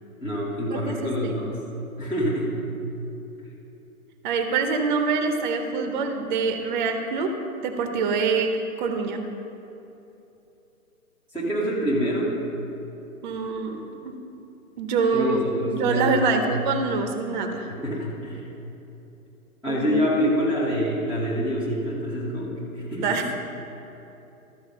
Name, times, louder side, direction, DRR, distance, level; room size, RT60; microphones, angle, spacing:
voice 1, 0.2-1.6 2.0-2.6 11.3-12.3 15.1-16.4 17.7-18.4 19.6-23.2, equal, 5° left, -11 dB, 0.5 m, -26 dB
voice 2, 0.7-1.4 4.2-7.3 7.6-8.5 8.8-9.2 13.2-14.1 14.8-15.4 15.7-17.7 19.7-20.0 23.0-23.2, right 4 dB, 35° right, 6 dB, 0.7 m, -25 dB
13.0 x 4.6 x 6.4 m, 3.0 s
hypercardioid pair, 135°, 43 cm